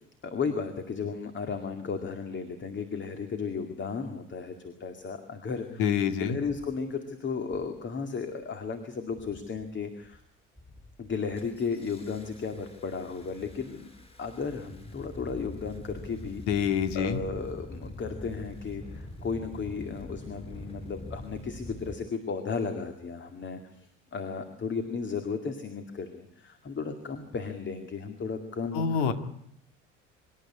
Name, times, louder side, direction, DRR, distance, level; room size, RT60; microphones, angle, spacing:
voice 1, 0.2-5.8 6.2-10.2 11.0-13.9 14.2-16.4 16.9-28.8, left 5 dB, 30° left, 7 dB, 2.2 m, -34 dB
Engine starting, 5.6-5.7 6.4-6.7 7.4-7.8 8.1-8.7 9.1-9.6 10.0-10.2 10.6-21.9, left 1 dB, 15° left, 5.8 m, -45 dB
voice 2, 5.8-6.4 16.5-17.2 28.7-29.1, left 7 dB, 60° left, 9 dB, 2.2 m, -26 dB
25.5 x 12.0 x 9.9 m, 0.72 s
figure-of-eight pair, 60°, 38 cm